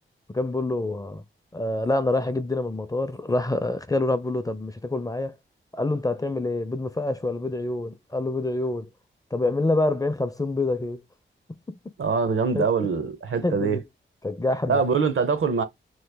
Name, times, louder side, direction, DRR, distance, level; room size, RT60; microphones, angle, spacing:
voice 1, 0.3-1.2 1.5-5.3 5.7-8.9 9.3-11.0 11.7-11.8 12.5-12.7 13.4-13.8 14.2-14.8, left 2 dB, 15° left, 0.4 m, -26 dB
voice 2, 12.0-13.8 14.7-15.6, right 5 dB, 75° right, 0.7 m, -23 dB
3.1 x 2.2 x 3.3 m
cardioid pair, 70°, 21 cm